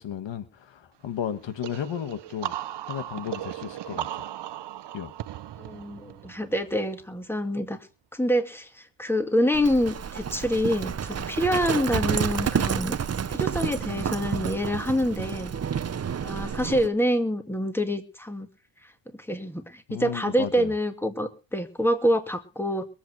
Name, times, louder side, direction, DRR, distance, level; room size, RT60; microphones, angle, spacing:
voice 1, 0.0-2.5 2.9-4.2 4.9-5.1 19.9-20.7, left 9 dB, 85° left, 1.4 m, -34 dB
sound 1, 1.6-7.2, right 12 dB, 70° right, 0.8 m, -37 dB
voice 2, 5.6-7.8 8.1-13.0 13.3-15.5 16.2-18.5 19.1-22.9, equal, 5° left, 2.1 m, -26 dB
Livestock farm animals working animals, 9.5-16.9, right 7 dB, 35° right, 0.7 m, -29 dB
22.5 x 8.2 x 4.6 m
cardioid pair, 85°, 43 cm